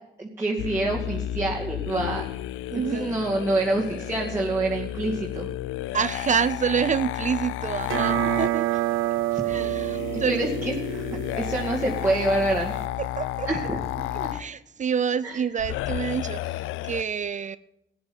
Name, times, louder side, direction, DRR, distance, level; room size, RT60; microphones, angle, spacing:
voice 1, 0.2-2.2 2.9-5.5 9.3-9.4 10.1-11.0 11.3-12.7 13.5-13.8 14.2-14.5 15.2-15.4, right 2 dB, 10° right, 2.2 m, -27 dB
sound 1, 0.6-8.5 9.5-14.5 15.6-17.0, left 14 dB, 90° left, 0.4 m, -32 dB
voice 2, 2.7-3.2 5.9-8.7 9.4-10.4 13.0-13.7 14.3-17.6, right 7 dB, 40° right, 0.5 m, -27 dB
sound 2, 7.8-12.9, right 14 dB, 90° right, 0.7 m, -28 dB
14.0 x 9.7 x 5.5 m
cardioid pair, 90°, 20 cm